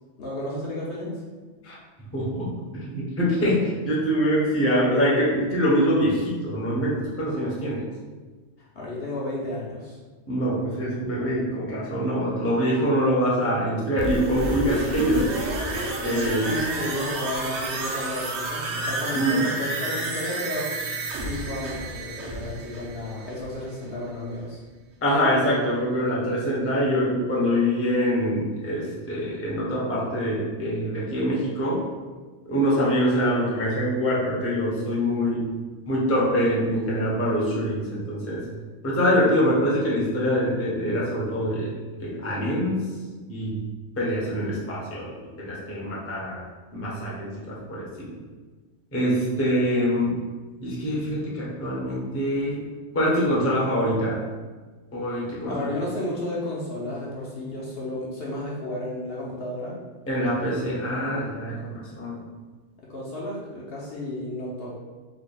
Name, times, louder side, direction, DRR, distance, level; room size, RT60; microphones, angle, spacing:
voice 1, 0.2-1.1 8.6-10.0 16.3-20.7 21.1-24.6 55.4-59.7 61.4-61.9 62.8-64.7, left 1 dB, 60° left, -5 dB, 0.8 m, -32 dB
voice 2, 2.1-7.8 10.3-15.3 16.0-16.5 19.1-19.4 25.0-31.9 32.5-35.5 35.9-38.4 38.8-41.7 42.0-42.9 43.3-43.6 44.0-46.5 46.7-48.1 48.9-50.2 50.6-52.7 52.9-54.2 54.9-55.7 60.1-62.2, equal, 15° left, -6 dB, 0.5 m, -24 dB
sound 1, 14.0-23.7 24.0-24.1, right 2 dB, 65° right, 0.9 m, -30 dB
3.4 x 2.2 x 3.8 m, 1.4 s
omnidirectional pair, 1.3 m